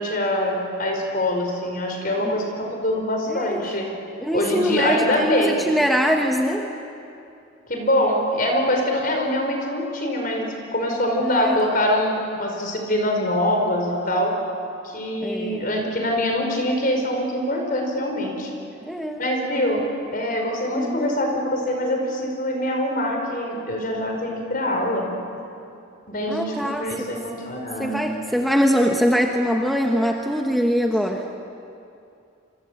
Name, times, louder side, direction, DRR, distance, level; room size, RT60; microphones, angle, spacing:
voice 1, 0.0-3.9 4.3-5.6 7.7-14.3 14.8-18.5 19.2-19.8 20.1-25.1 26.1-28.0, left 1 dB, 45° left, 2 dB, 5.2 m, -24 dB
voice 2, 3.3-3.6 4.2-6.7 11.2-11.6 15.2-15.7 18.9-19.2 20.7-21.2 26.3-27.1 27.8-31.2, equal, ahead, 2 dB, 1.1 m, -23 dB
27.5 x 24.5 x 8.2 m, 2.6 s
head